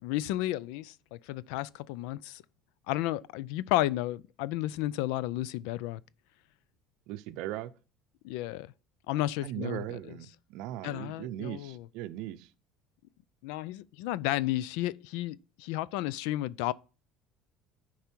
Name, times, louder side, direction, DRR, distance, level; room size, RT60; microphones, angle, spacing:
voice 1, 0.0-2.4 2.9-6.0 8.2-8.7 9.1-10.0 10.8-11.8 13.4-16.7, left 15 dB, 75° left, 0.4 m, -32 dB
voice 2, 7.1-7.7 9.4-12.5, right 13 dB, 60° right, 0.6 m, -38 dB
10.5 x 4.7 x 4.5 m
cardioid pair, 160°, 0 cm